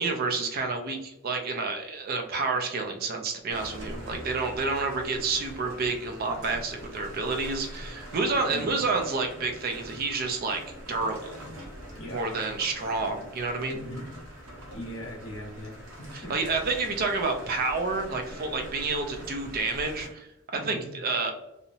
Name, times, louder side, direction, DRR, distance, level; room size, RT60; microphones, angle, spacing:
voice 1, 0.0-10.6 10.9-11.4 12.1-13.8 16.1-21.3, right 3 dB, 45° right, 4 dB, 0.4 m, -29 dB
sound 1, 3.5-20.1, equal, 85° right, 0.8 m, -43 dB
voice 2, 8.5-8.8 11.4-11.6 11.9-12.2 13.7-14.1 14.7-16.3 20.5-20.9, equal, 75° left, -1 dB, 1.0 m, -40 dB
2.7 x 2.0 x 2.6 m, 0.85 s
head